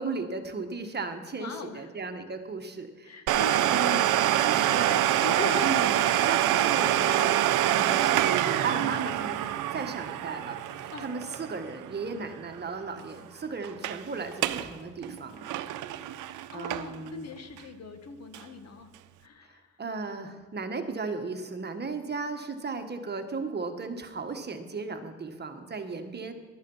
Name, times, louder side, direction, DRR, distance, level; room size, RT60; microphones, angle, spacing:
voice 1, 0.0-3.1 3.7-4.1 4.4-5.0 5.6-5.9 6.2-7.4 7.7-9.4 9.7-15.4 16.5-17.3 19.8-26.3, right 4 dB, 35° right, 6 dB, 1.4 m, -35 dB
voice 2, 1.4-1.9 3.0-3.6 4.2-5.7 6.0-6.3 10.9-11.1 16.5-18.9 19.2-19.6, left 5 dB, 55° left, 7 dB, 1.6 m, -40 dB
Domestic sounds home sounds, 3.3-12.7 13.0-13.1 13.6-14.0 14.3-14.7 15.0-17.1 17.6-17.7 18.3-18.4, right 12 dB, 85° right, 0.7 m, -26 dB
13.0 x 11.5 x 5.6 m, 1.5 s
cardioid pair, 90°, 30 cm